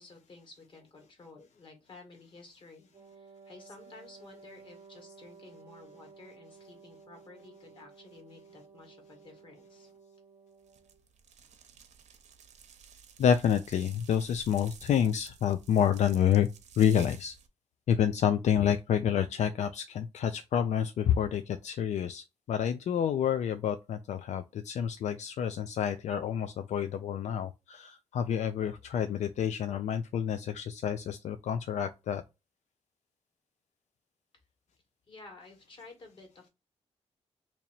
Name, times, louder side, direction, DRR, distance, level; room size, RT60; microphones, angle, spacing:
voice 1, 0.0-9.9 35.1-36.5, left 3 dB, 45° left, 1.7 m, -53 dB
Wind instrument woodwind instrument, 2.9-11.0, right 5 dB, 40° right, 0.7 m, -55 dB
sound 1, 10.7-17.5, right 6 dB, 80° right, 0.7 m, -53 dB
voice 2, 13.2-16.5 16.8-17.3 17.9-32.2, left 8 dB, 80° left, 0.4 m, -28 dB
2.9 x 2.7 x 4.2 m
wide cardioid pair, 130°, 12 cm